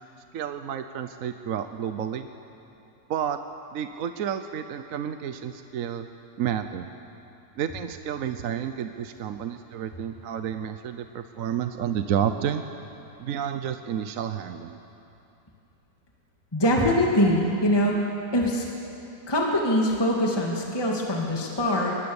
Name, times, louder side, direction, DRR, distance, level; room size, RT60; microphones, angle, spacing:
voice 1, 0.3-2.3 3.1-3.4 3.7-6.1 6.4-6.9 7.6-12.6 13.2-14.8, right 9 dB, 60° right, 9 dB, 1.0 m, -30 dB
voice 2, 16.5-18.0 18.3-18.6 19.3-22.0, left 1 dB, 15° left, -2 dB, 2.1 m, -23 dB
23.5 x 20.5 x 7.1 m, 2.8 s
omnidirectional pair, 1.9 m